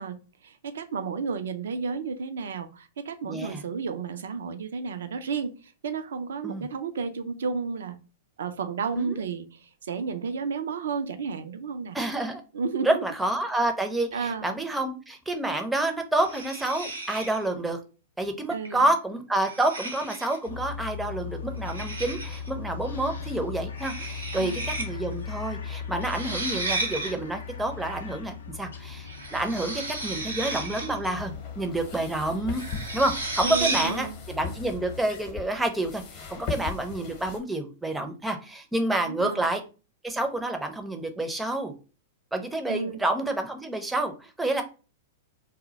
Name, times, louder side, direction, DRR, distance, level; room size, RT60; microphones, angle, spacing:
voice 1, 0.0-8.0 8.4-12.0 12.5-13.0 14.1-14.6 18.5-18.9 24.3-24.7 33.4-34.1 39.0-39.5 42.7-43.0, right 5 dB, 70° right, 9 dB, 0.4 m, -32 dB
voice 2, 3.2-3.6 6.4-6.7 9.0-9.1 11.9-12.4 12.8-17.8 18.2-32.6 32.9-39.6 40.0-41.7 42.3-44.6, right 1 dB, 5° right, 5 dB, 0.5 m, -28 dB
sound 1, 16.2-17.5 18.6-18.9 19.4-20.5 21.7-22.5 23.8-24.9 25.1-25.2 26.0-27.1 29.1-31.0 32.5-34.0, right 2 dB, 90° right, 0.7 m, -33 dB
sound 2, 20.5-35.0, left 6 dB, 75° left, 0.4 m, -38 dB
sound 3, 31.1-37.4, left 6 dB, 45° left, 0.8 m, -39 dB
2.2 x 2.0 x 3.8 m, 0.34 s
figure-of-eight pair, 100°, 0 cm